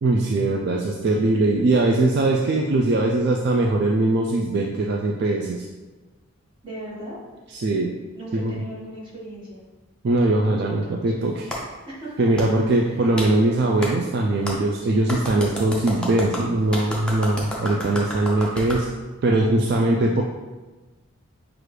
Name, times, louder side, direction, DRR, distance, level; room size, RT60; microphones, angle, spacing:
voice 1, 0.0-5.7 7.5-7.9 8.3-8.5 10.0-11.5 12.2-18.9 19.2-20.2, right 2 dB, 50° right, 0 dB, 0.3 m, -21 dB
voice 2, 6.6-7.2 8.1-9.6 10.2-11.1 11.9-12.3 12.8-13.0 14.8-15.0, right 1 dB, 20° right, -8 dB, 1.5 m, -38 dB
Clapping, 11.5-11.6 12.4-12.5 13.2-13.3 13.8-13.9 14.5-14.6 15.1-18.8, left 1 dB, 5° left, 0.5 m, -30 dB
6.1 x 2.5 x 3.2 m, 1.2 s
head